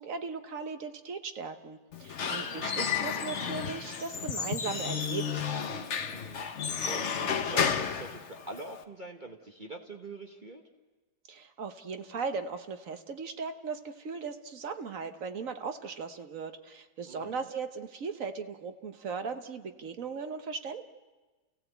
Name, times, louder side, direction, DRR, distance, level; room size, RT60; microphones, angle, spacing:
voice 1, 0.0-5.4 11.3-20.8, right 5 dB, 55° right, 7 dB, 1.4 m, -38 dB
Squeak / Wood, 1.9-8.8, left 7 dB, 50° left, 1.3 m, -32 dB
voice 2, 2.1-2.7 6.1-10.6 17.1-17.5, right 2 dB, 30° right, 3 dB, 1.3 m, -45 dB
29.0 x 16.5 x 8.1 m, 1.2 s
omnidirectional pair, 1.7 m